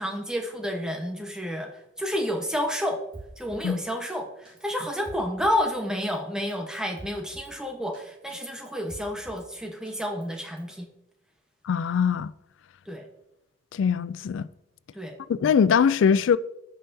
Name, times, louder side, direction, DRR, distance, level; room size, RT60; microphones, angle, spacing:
voice 1, 0.0-3.0 3.4-10.9 12.9-13.1 14.9-15.2, equal, 5° right, 1.0 m, -30 dB
Drum kit, 3.1-3.7 4.1-4.2 4.5-5.6 6.0-6.2 6.5-7.5 7.9-8.0 8.3-9.5 9.9-10.8, right 1 dB, 25° right, 1.8 m, -46 dB
voice 2, 11.6-12.3 13.7-14.5 15.3-16.4, left 7 dB, 80° left, 0.3 m, -22 dB
16.0 x 5.6 x 2.7 m
head